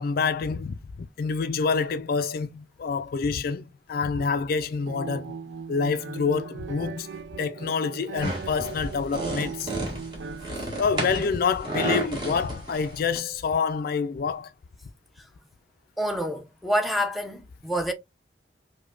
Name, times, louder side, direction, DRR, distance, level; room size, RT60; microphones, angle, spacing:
voice 1, 0.0-5.3 5.7-7.1 7.4-9.7 10.8-14.5, left 5 dB, 55° left, 0.3 m, -27 dB
sound 1, 4.8-10.5, right 6 dB, 85° right, 0.4 m, -39 dB
sound 2, 8.2-13.2, right 2 dB, 25° right, 1.6 m, -32 dB
voice 2, 16.0-17.9, equal, ahead, 0.6 m, -27 dB
4.9 x 2.2 x 2.4 m
head